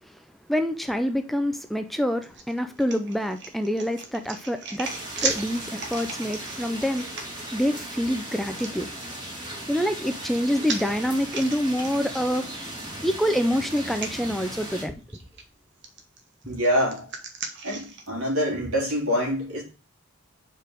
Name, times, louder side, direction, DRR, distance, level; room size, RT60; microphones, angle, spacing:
voice 1, 0.5-4.9 5.2-7.1 7.5-8.9 9.7-12.5 13.0-15.0, equal, ahead, 0.4 m, -26 dB
sound 1, 2.2-7.8 8.6-8.7 9.9-12.9 13.3-13.4 13.9-14.1 15.1-15.4 15.8-18.1, right 4 dB, 55° right, 1.2 m, -37 dB
sound 2, 4.8-14.9, right 1 dB, 20° right, 2.1 m, -37 dB
voice 2, 16.5-17.1 17.6-19.6, equal, 85° right, 3.5 m, -25 dB
5.1 x 4.7 x 6.3 m
head